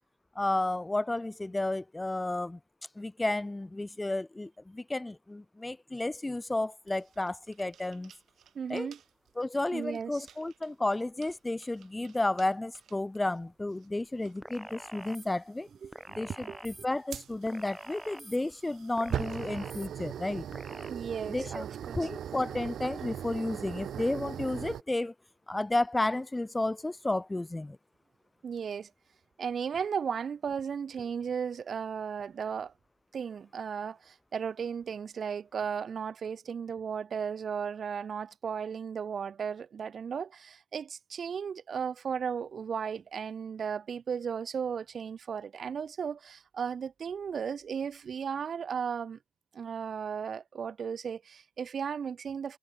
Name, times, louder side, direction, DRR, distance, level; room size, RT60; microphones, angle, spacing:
voice 1, 0.3-2.6 3.0-8.1 8.7-8.9 9.4-15.7 16.2-20.5 21.3-21.6 22.0-25.1 25.5-27.8, left 2 dB, 15° left, 1.3 m, -32 dB
sound 1, 6.9-8.5 8.8-9.0 10.2-10.7 11.2-11.3 11.6-12.1 12.4-12.5 12.7-13.2 14.3-14.4 15.1-15.3 17.1-24.8, right 9 dB, 65° right, 3.8 m, -40 dB
voice 2, 8.5-9.0 9.7-10.2 15.8-16.6 20.9-22.0 28.4-28.9 29.4-32.7 33.1-49.2 49.5-52.6, right 7 dB, 50° right, 0.5 m, -35 dB
sound 2, 14.4-15.3 15.9-16.9 17.5-18.4 19.0-19.9 20.5-20.9, right 1 dB, 5° right, 7.5 m, -45 dB
cardioid pair, 90°, 0 cm